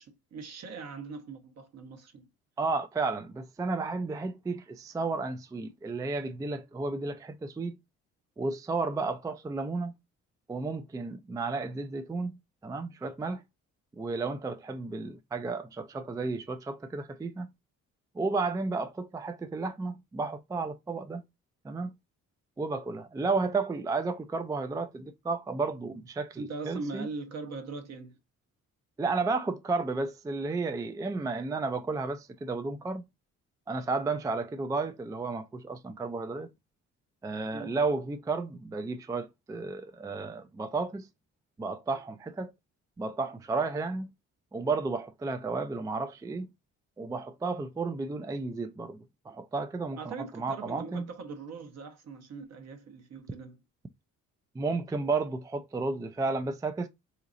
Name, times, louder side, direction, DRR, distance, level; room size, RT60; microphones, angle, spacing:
voice 1, 0.0-2.3 26.4-28.2 37.5-37.8 50.0-53.6, right 4 dB, 60° right, 1.1 m, -41 dB
voice 2, 2.6-7.8 8.4-9.9 10.5-12.3 12.6-13.4 13.9-17.5 18.1-21.2 21.6-21.9 22.6-27.1 29.0-33.0 33.7-36.5 37.2-41.1 41.6-42.5 43.0-44.1 44.5-46.5 47.0-51.1 54.5-56.9, right 3 dB, 10° right, 0.3 m, -32 dB
3.8 x 2.8 x 2.5 m
cardioid pair, 90°, 30 cm